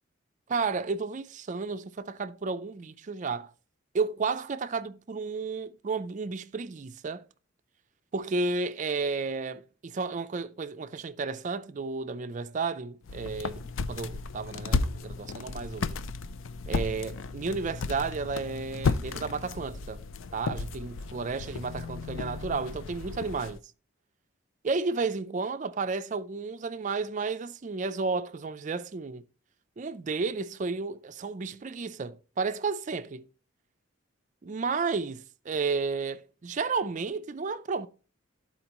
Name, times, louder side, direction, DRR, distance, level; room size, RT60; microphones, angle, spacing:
voice 1, 0.5-3.5 3.9-7.2 8.1-16.0 16.7-20.0 20.3-23.6 24.6-29.2 29.8-33.2 34.4-35.2 35.5-37.9, right 4 dB, 35° right, 0.4 m, -32 dB
sound 1, 13.0-23.6, left 4 dB, 70° left, 0.4 m, -34 dB
13.0 x 4.3 x 2.9 m
head